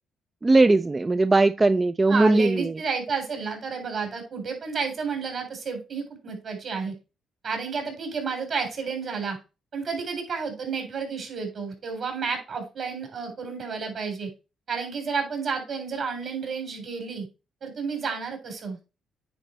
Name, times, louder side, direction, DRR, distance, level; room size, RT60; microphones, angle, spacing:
voice 1, 0.4-2.7, right 2 dB, 25° right, 0.3 m, -19 dB
voice 2, 2.1-6.9 7.4-9.4 9.7-14.3 14.7-17.3 17.6-18.8, right 5 dB, 55° right, 3.8 m, -31 dB
9.4 x 4.2 x 4.4 m
cardioid pair, 90°, 0 cm